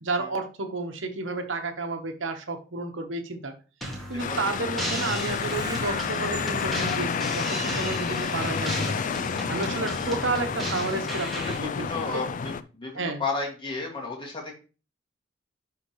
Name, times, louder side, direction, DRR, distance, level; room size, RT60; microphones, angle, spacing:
voice 1, 0.0-3.5 4.1-9.0 9.5-12.2 12.9-13.2, right 3 dB, 70° right, 5 dB, 1.1 m, -31 dB
sound 1, 3.8-11.6, right 1 dB, ahead, 1.9 m, -35 dB
sound 2, 4.2-12.6, left 6 dB, 40° left, 0.4 m, -30 dB
Screech, 4.9-7.9 8.3-8.4 8.8-8.9, right 6 dB, 20° right, 0.5 m, -43 dB
voice 2, 11.4-14.5, left 3 dB, 25° left, -1 dB, 2.1 m, -33 dB
11.0 x 3.9 x 3.1 m, 0.34 s
head